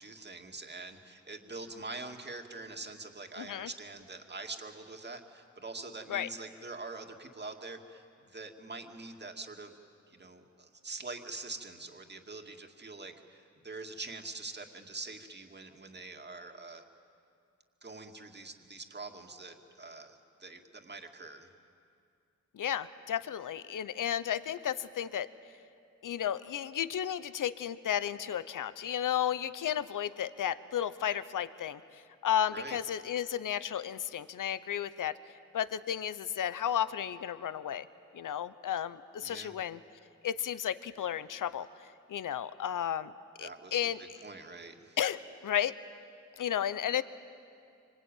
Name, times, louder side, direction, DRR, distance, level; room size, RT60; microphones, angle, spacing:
voice 1, 0.0-9.7 10.1-16.8 17.8-21.5 32.5-32.8 39.2-39.6 43.4-45.0, right 3 dB, 35° right, 4 dB, 2.3 m, -44 dB
voice 2, 3.4-3.7 6.1-6.3 22.5-25.3 26.0-31.8 32.2-35.2 35.5-37.9 38.1-39.8 40.2-41.7 42.1-43.1 43.4-44.0 45.0-45.7 46.4-47.0, left 10 dB, 85° left, 14 dB, 0.8 m, -33 dB
25.5 x 25.5 x 9.2 m, 2.4 s
cardioid pair, 75°, 31 cm